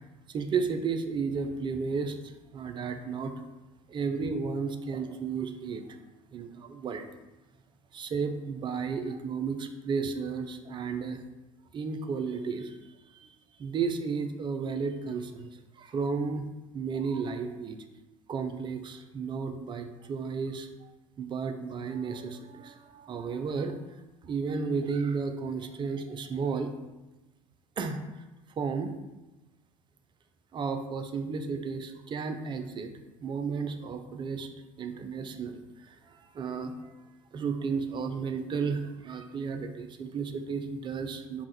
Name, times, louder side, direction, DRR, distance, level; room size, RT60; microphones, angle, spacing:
voice 1, 0.3-3.3 3.9-6.0 6.3-7.1 7.9-11.2 11.7-16.5 16.7-17.8 18.3-20.9 21.2-23.8 24.2-26.7 27.8-28.2 28.6-29.0 30.5-32.9 33.2-34.5 34.8-36.9 37.3-41.5, right 5 dB, 25° right, 7 dB, 0.4 m, -33 dB
3.4 x 2.2 x 4.0 m, 1.0 s
figure-of-eight pair, 65°, 18 cm